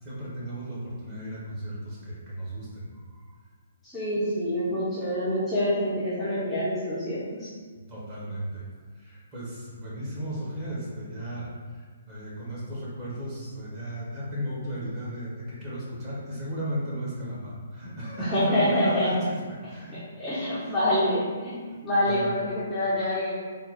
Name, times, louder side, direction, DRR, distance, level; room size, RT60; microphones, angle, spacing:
voice 1, 0.0-2.9 7.9-8.7 8.9-20.0 20.6-20.7 21.7-21.8 22.0-22.3, equal, 25° right, -8 dB, 1.5 m, -35 dB
voice 2, 3.8-7.5 18.2-19.1 20.2-21.5 21.8-23.3, left 1 dB, 5° left, -14 dB, 0.9 m, -26 dB
3.9 x 2.2 x 4.3 m, 1.5 s
figure-of-eight pair, 125°, 0 cm